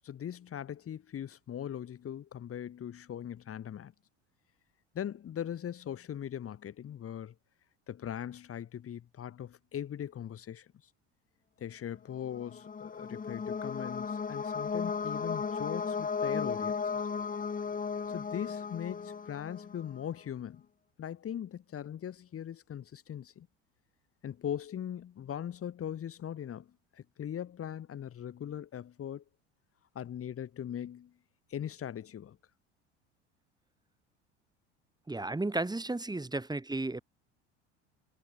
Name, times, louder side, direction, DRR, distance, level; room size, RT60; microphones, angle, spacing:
voice 1, 0.0-3.9 4.9-7.3 7.9-10.7 11.6-17.0 18.1-20.7 21.0-23.5 24.2-29.2 30.0-31.1 31.5-32.4, left 9 dB, 40° left, 5.3 m, -40 dB
sound 1, 12.2-20.0, left 5 dB, 25° left, 2.7 m, -35 dB
voice 2, 35.1-37.0, right 2 dB, 10° right, 6.2 m, -33 dB
hypercardioid pair, 70°, 35 cm